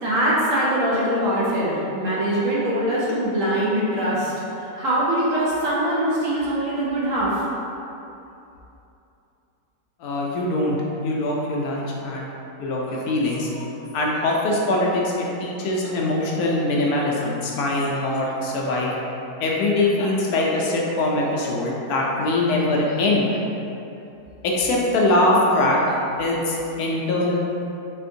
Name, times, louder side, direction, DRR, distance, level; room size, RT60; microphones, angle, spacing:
voice 1, 0.0-4.3 4.6-7.5, right 1 dB, 65° right, -7 dB, 1.0 m, -22 dB
voice 2, 10.0-10.8 11.0-12.3 12.6-13.7 13.9-18.9 19.4-23.4 24.4-25.8 26.2-27.4, left 2 dB, 75° left, -2 dB, 1.0 m, -22 dB
4.4 x 2.5 x 2.6 m, 2.8 s
omnidirectional pair, 1.7 m